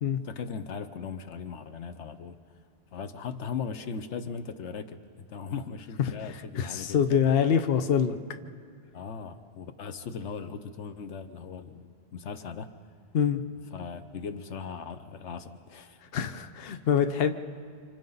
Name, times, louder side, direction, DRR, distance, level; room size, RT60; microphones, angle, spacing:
voice 1, 0.2-2.4 2.9-7.3 8.9-12.7 13.7-16.0, left 6 dB, 80° left, 10 dB, 1.1 m, -38 dB
voice 2, 6.6-8.2 13.1-13.4 16.1-17.3, left 7 dB, 60° left, 8 dB, 1.0 m, -25 dB
29.5 x 26.5 x 4.0 m, 2.1 s
omnidirectional pair, 1.2 m